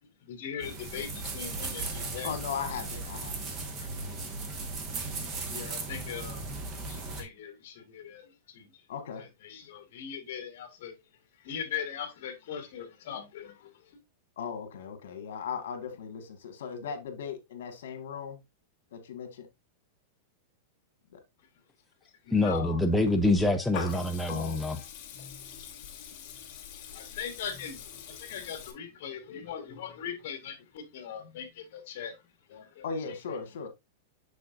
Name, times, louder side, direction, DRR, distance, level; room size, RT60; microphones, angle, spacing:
voice 1, 0.0-2.3 2.7-2.8 3.5-3.9 5.4-6.4 6.9-8.8 9.2-11.0 11.4-14.0 22.2-22.8 26.8-32.2 32.5-32.9 33.3-33.4, left 8 dB, 55° left, 1.9 m, -40 dB
sound 1, 0.6-7.2, right 3 dB, 25° right, 1.3 m, -37 dB
voice 2, 2.2-3.5 8.9-9.2 14.4-18.4 18.9-19.5 21.1-21.2 24.3-24.9 32.8-33.7, left 6 dB, 75° left, 1.6 m, -38 dB
voice 3, 22.3-24.8, left 2 dB, 5° left, 0.5 m, -26 dB
Water tap faucet / Liquid, 23.0-28.7, left 8 dB, 35° left, 1.6 m, -43 dB
6.7 x 6.3 x 2.5 m
supercardioid pair, 165°, 0 cm